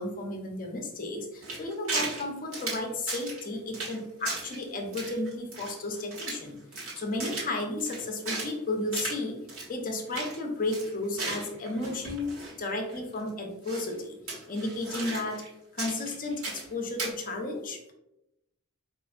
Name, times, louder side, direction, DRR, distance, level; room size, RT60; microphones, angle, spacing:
voice 1, 0.0-9.4 9.7-14.2 14.5-15.4 15.7-17.9, left 2 dB, 40° left, 3 dB, 0.6 m, -33 dB
sound 1, 1.4-2.2 2.5-3.4 3.7-4.0 4.2-4.6 4.9-6.5 6.7-8.5 8.9-9.2 9.5-9.7 9.9-10.4 10.7-12.6 12.9-13.0 13.7-13.9 14.3-15.5 15.8-16.7 17.0-17.1, right 3 dB, 70° right, 1.2 m, -36 dB
4.6 x 2.5 x 2.3 m, 0.87 s
head